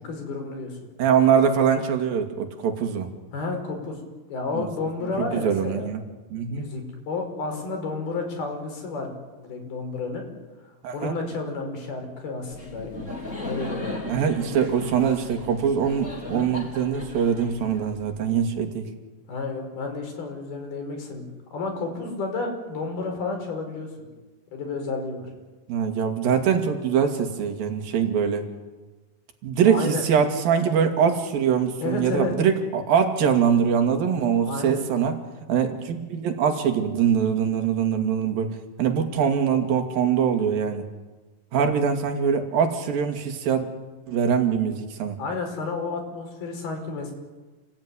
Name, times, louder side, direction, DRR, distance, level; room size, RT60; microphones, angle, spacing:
voice 1, 0.1-0.9 3.3-4.0 4.3-5.9 6.5-9.1 9.4-10.3 10.9-13.1 13.4-14.0 14.3-14.4 16.2-16.5 19.3-21.3 21.5-24.1 24.5-25.3 29.7-30.0 31.8-32.3 34.5-34.9 41.6-41.7 45.2-47.1, left 3 dB, 85° left, 3 dB, 7.2 m, -31 dB
voice 2, 1.0-3.1 4.5-4.7 5.2-6.0 6.3-6.7 10.8-11.1 14.0-18.9 25.7-28.5 29.4-35.2 35.5-40.9 41.5-43.7 44.1-45.2, right 7 dB, 70° right, 5 dB, 4.1 m, -23 dB
Laughter, 12.5-18.3, left 2 dB, 20° left, 4.5 m, -37 dB
29.0 x 19.5 x 9.8 m, 1.2 s
omnidirectional pair, 4.3 m